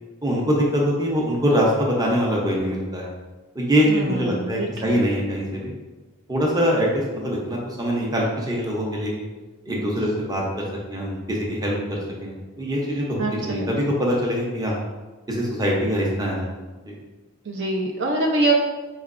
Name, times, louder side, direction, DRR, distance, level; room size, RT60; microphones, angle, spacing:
voice 1, 0.2-3.1 3.5-5.7 6.3-9.3 9.7-14.8 15.3-16.5 16.8-17.0, equal, 20° right, -2 dB, 0.7 m, -23 dB
voice 2, 3.8-4.9 13.2-13.7 17.4-18.5, right 2 dB, 60° right, 0 dB, 0.5 m, -24 dB
4.5 x 3.1 x 2.5 m, 1.2 s
head